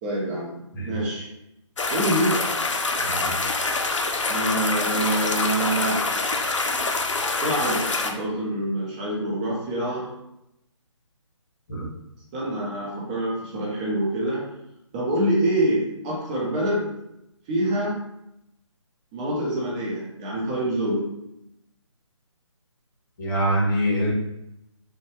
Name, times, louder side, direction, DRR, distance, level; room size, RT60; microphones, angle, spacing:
voice 1, 0.0-0.6 0.8-1.3 1.9-2.4 4.3-6.1 7.4-10.1 12.3-14.4 14.9-16.9 17.5-18.0 19.1-21.1, right 1 dB, 15° right, -4 dB, 0.5 m, -26 dB
sound 1, 1.8-8.1, left 3 dB, 70° left, 0.5 m, -25 dB
voice 2, 23.2-24.1, equal, 40° left, -4 dB, 1.1 m, -24 dB
2.6 x 2.2 x 3.0 m, 0.82 s
figure-of-eight pair, 145°, 16 cm